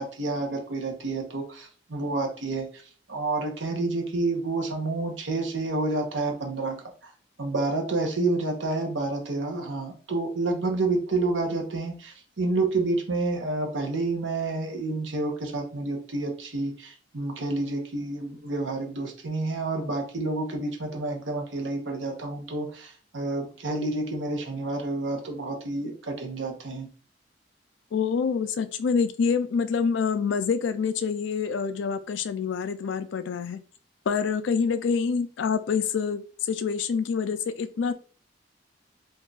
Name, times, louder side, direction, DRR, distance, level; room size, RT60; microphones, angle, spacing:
voice 1, 0.0-2.8 3.1-7.1 7.4-26.9, right 2 dB, 85° right, 3 dB, 0.8 m, -29 dB
voice 2, 27.9-33.6 34.1-37.9, left 6 dB, 75° left, 11 dB, 0.4 m, -26 dB
2.6 x 2.3 x 3.9 m, 0.39 s
head